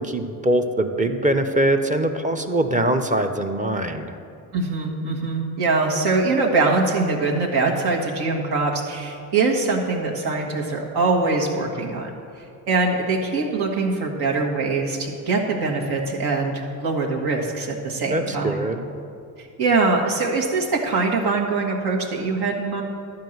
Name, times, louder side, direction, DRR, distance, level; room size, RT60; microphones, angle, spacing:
voice 1, 0.0-4.1 18.1-18.8, right 1 dB, 20° right, 5 dB, 0.7 m, -22 dB
voice 2, 4.5-12.1 12.7-18.7 19.4-22.8, right 3 dB, 75° right, 0 dB, 1.7 m, -23 dB
11.5 x 4.7 x 7.9 m, 2.6 s
supercardioid pair, 80°, 40 cm